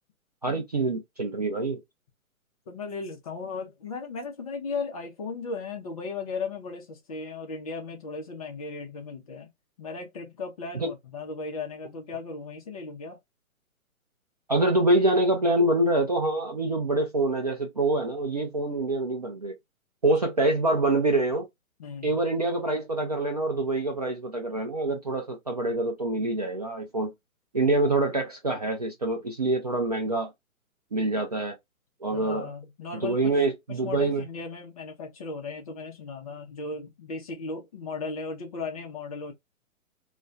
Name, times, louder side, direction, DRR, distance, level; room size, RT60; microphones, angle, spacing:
voice 1, 0.4-1.8 10.8-10.9 14.5-19.5 20.0-21.5 22.0-27.1 27.5-30.3 30.9-31.6 32.0-32.5 32.9-34.2, right 2 dB, 30° right, 0.4 m, -25 dB
voice 2, 2.7-9.5 9.8-13.2 21.8-22.2 27.6-27.7 32.1-33.4 33.8-39.3, left 4 dB, 25° left, 0.5 m, -36 dB
2.3 x 2.2 x 2.5 m
figure-of-eight pair, 135°, 42 cm